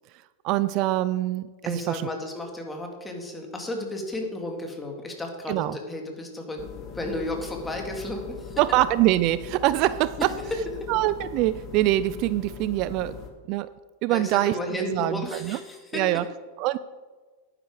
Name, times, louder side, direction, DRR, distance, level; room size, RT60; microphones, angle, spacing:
voice 1, 0.4-2.0 5.5-5.8 8.6-10.2 10.9-13.2 13.5-13.7 14.0-14.6 14.9-15.6 15.9-16.2 16.6-16.8, right 15 dB, 45° right, 15 dB, 0.4 m, -24 dB
voice 2, 1.6-6.6 6.9-8.6 10.2-10.9 14.1-16.0, left 1 dB, 10° left, 2 dB, 2.2 m, -33 dB
sound 1, 6.6-13.3, left 7 dB, 35° left, 1.9 m, -41 dB
11.0 x 10.0 x 4.9 m, 1.4 s
supercardioid pair, 135°, 0 cm